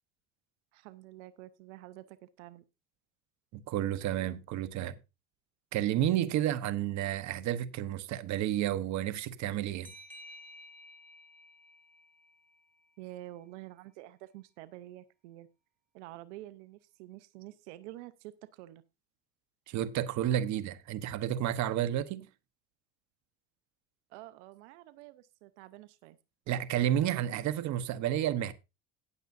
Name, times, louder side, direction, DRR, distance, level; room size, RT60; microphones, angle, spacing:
voice 1, 0.7-2.6 4.2-4.4 13.0-15.5 15.9-18.8 24.1-26.2, right 16 dB, 90° right, 0.8 m, -48 dB
voice 2, 3.5-5.0 5.7-9.9 19.7-22.3 26.5-28.5, right 11 dB, 55° right, 1.1 m, -31 dB
sound 1, 9.8-13.2, left 1 dB, 5° left, 2.5 m, -53 dB
18.0 x 6.7 x 2.6 m
supercardioid pair, 105°, 34 cm